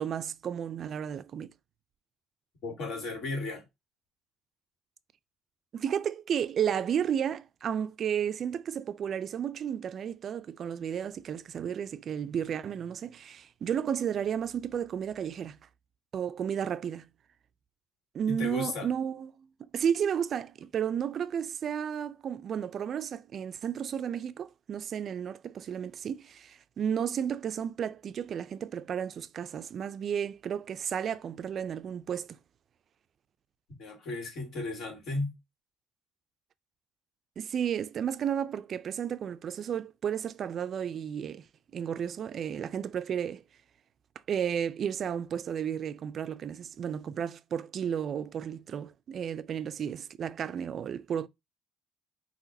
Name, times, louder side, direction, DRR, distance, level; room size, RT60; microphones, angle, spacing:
voice 1, 0.0-1.5 5.7-15.6 16.1-17.1 18.1-19.5 19.7-32.4 37.4-41.5 41.7-43.4 44.3-51.3, right 8 dB, 50° right, 0.4 m, -33 dB
voice 2, 2.6-3.6 18.2-18.9 33.8-35.4, left 2 dB, 65° left, 2.4 m, -35 dB
5.7 x 2.9 x 2.6 m
cardioid pair, 105°, 0 cm